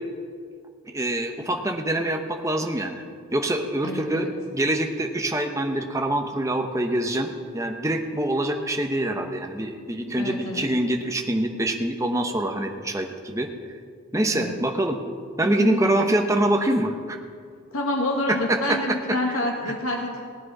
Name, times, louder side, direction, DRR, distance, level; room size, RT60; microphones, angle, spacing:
voice 1, 0.9-3.0 3.3-13.5 14.1-15.0 15.4-17.2 18.3-19.0 19.3-19.4, right 1 dB, 15° right, 4 dB, 0.9 m, -25 dB
voice 2, 3.8-4.3 10.2-10.7 14.3-14.5 15.6-16.3 17.7-20.2, left 1 dB, 75° left, 0 dB, 1.4 m, -28 dB
18.0 x 9.0 x 4.8 m, 2.1 s
head